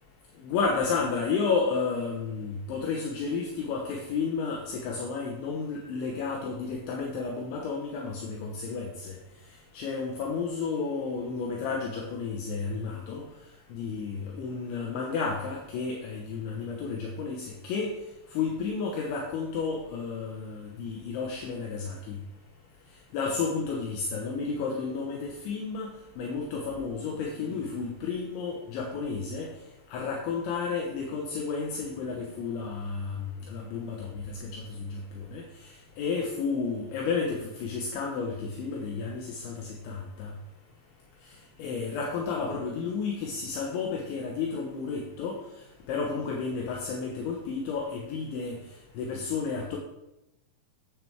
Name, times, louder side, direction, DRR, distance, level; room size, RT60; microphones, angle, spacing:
voice 1, 0.4-8.9 9.7-13.2 13.7-17.9 18.4-22.2 23.1-25.9 26.2-29.5 29.9-33.1 33.5-34.6 35.3-35.4 36.0-39.6 39.9-40.3 41.6-45.4 45.9-48.6 49.0-49.8, left 5 dB, 75° left, 0 dB, 3.1 m, -31 dB
10.5 x 8.7 x 3.4 m, 0.91 s
omnidirectional pair, 6.0 m